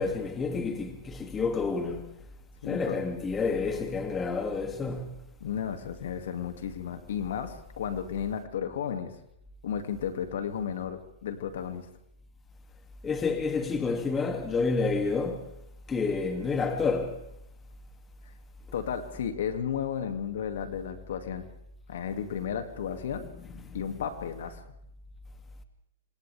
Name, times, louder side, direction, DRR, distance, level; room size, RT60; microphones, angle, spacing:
voice 1, 0.0-2.1 2.6-5.2 13.0-15.5 15.9-17.2, left 4 dB, 20° left, 2.6 m, -29 dB
voice 2, 2.6-3.0 5.4-9.1 9.6-11.9 18.7-21.4 21.9-23.3 23.7-24.6, left 8 dB, 70° left, 2.5 m, -33 dB
27.0 x 27.0 x 3.6 m
hypercardioid pair, 115°, 0 cm